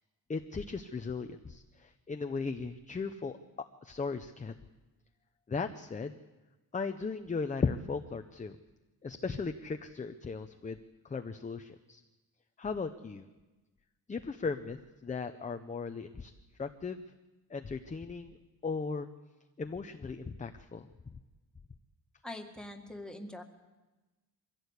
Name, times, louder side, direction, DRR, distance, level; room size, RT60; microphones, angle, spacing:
voice 1, 0.3-3.4 3.8-4.5 5.5-6.2 6.7-8.6 9.0-10.8 11.0-12.0 12.6-13.3 14.1-16.3 16.6-17.0 17.5-18.4 18.6-19.1 19.6-20.9, left 4 dB, 20° left, 7 dB, 0.7 m, -37 dB
voice 2, 22.2-23.4, left 1 dB, ahead, 2 dB, 2.0 m, -43 dB
23.5 x 16.0 x 8.3 m, 1.1 s
wide cardioid pair, 175°, 37 cm